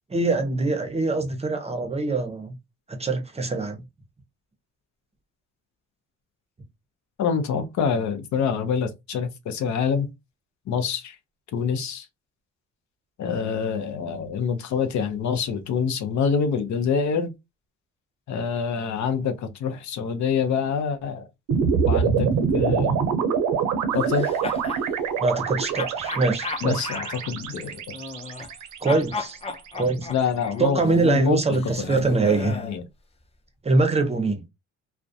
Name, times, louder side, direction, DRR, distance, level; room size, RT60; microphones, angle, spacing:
voice 1, 0.1-2.6 2.9-3.8 25.2-26.9 28.8-29.4 29.7-30.1 30.6-32.5 33.6-34.4, right 3 dB, 20° right, 0.6 m, -23 dB
voice 2, 7.2-10.1 10.7-11.2 11.5-12.1 13.2-17.3 18.3-21.3 21.9-23.0 23.9-24.3 26.6-27.8 30.1-32.8, left 6 dB, 70° left, 0.6 m, -26 dB
sound 1, 21.5-29.8, right 6 dB, 80° right, 0.6 m, -25 dB
sound 2, 24.0-24.9 25.7-28.6 28.9-32.8, left 4 dB, 20° left, 0.5 m, -36 dB
2.3 x 2.1 x 2.6 m
cardioid pair, 90°, 30 cm